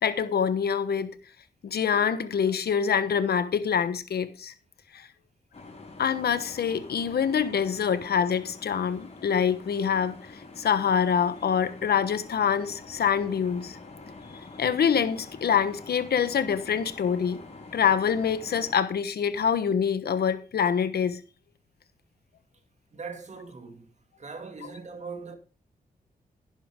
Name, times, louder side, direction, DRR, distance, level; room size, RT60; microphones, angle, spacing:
voice 1, 0.0-1.2 1.6-4.5 4.9-5.1 6.0-10.2 10.6-13.8 14.6-17.4 17.7-21.2 24.6-24.7, left 7 dB, 80° left, 1.2 m, -25 dB
sound 1, 5.5-18.8, left 3 dB, 45° left, 4.9 m, -46 dB
voice 2, 22.9-23.9 24.2-25.4, right 4 dB, 45° right, 2.4 m, -40 dB
11.0 x 10.0 x 3.7 m
cardioid pair, 75°, 16 cm